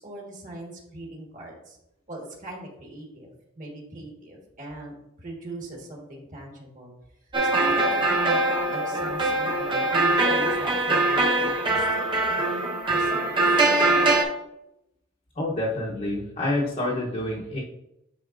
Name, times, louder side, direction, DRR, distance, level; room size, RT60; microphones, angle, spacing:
voice 1, 0.0-1.8 2.1-3.3 3.5-6.9 7.4-8.4 8.7-12.0 12.3-13.6, right 1 dB, 40° right, -1 dB, 1.6 m, -40 dB
sound 1, 7.3-14.2, right 2 dB, 25° right, 1.0 m, -22 dB
voice 2, 15.3-17.6, left 1 dB, 35° left, -5 dB, 0.9 m, -28 dB
9.9 x 4.2 x 2.5 m, 0.86 s
head